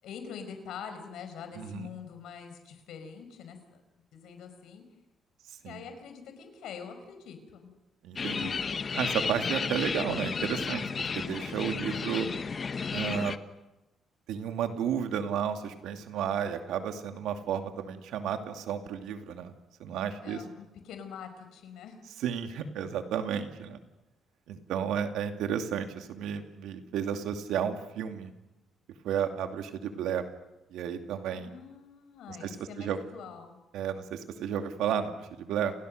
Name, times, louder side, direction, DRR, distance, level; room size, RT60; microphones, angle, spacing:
voice 1, 0.0-3.8 4.1-4.8 5.6-7.7 8.3-8.6 20.2-22.0 31.3-33.6, left 7 dB, 80° left, 7 dB, 5.2 m, -44 dB
voice 2, 1.6-1.9 5.6-5.8 8.0-8.5 8.9-12.3 12.9-13.4 14.3-19.5 19.8-20.4 22.2-23.8 24.5-28.3 29.0-30.2 30.7-31.5 32.3-33.0 33.7-35.7, right 8 dB, 85° right, 6 dB, 2.5 m, -32 dB
sound 1, 8.2-13.4, left 5 dB, 40° left, 1.2 m, -33 dB
29.5 x 28.5 x 6.6 m, 0.97 s
cardioid pair, 90°, 0 cm